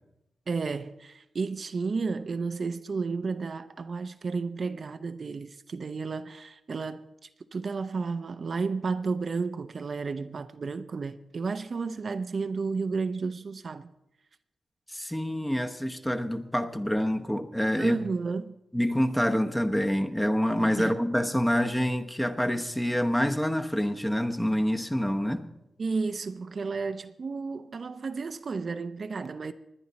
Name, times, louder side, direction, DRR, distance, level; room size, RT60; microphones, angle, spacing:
voice 1, 0.5-7.1 7.5-13.9 17.7-18.6 20.8-21.0 25.8-29.5, right 4 dB, 50° right, 0.6 m, -32 dB
voice 2, 14.9-18.0 18.7-25.5, equal, 5° left, 0.9 m, -27 dB
20.0 x 10.0 x 4.1 m
cardioid pair, 85°, 0 cm